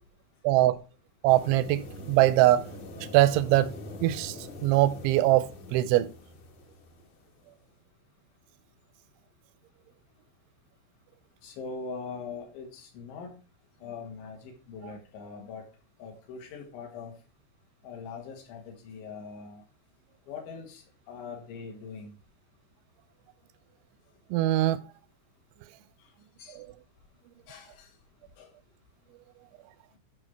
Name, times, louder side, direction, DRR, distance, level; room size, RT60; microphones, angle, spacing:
voice 1, 0.4-0.8 1.2-2.7 3.1-3.7 4.0-4.4 4.6-6.1 24.3-24.8 26.6-26.7, right 15 dB, 85° right, 2.8 m, -22 dB
sound 1, 1.3-7.2, left 1 dB, 60° left, 2.4 m, -43 dB
voice 2, 11.4-13.3 13.8-15.6 16.0-17.1 17.8-19.6 20.3-22.1 26.4-26.6 27.5-27.9 28.4-28.5, left 5 dB, 75° left, 3.9 m, -42 dB
12.0 x 5.4 x 3.4 m
omnidirectional pair, 5.5 m